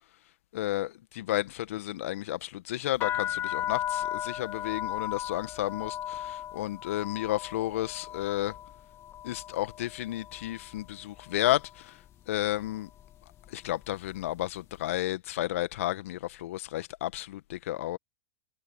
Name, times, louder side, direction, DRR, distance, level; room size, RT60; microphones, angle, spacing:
voice 1, 0.5-8.6 9.2-12.9 13.5-18.0, left 15 dB, 65° left, 1.9 m, -32 dB
sound 1, 2.9-10.9 11.1-11.8 12.4-12.7 13.0-14.4, left 12 dB, 35° left, 1.8 m, -36 dB
hypercardioid pair, 100°, 8 cm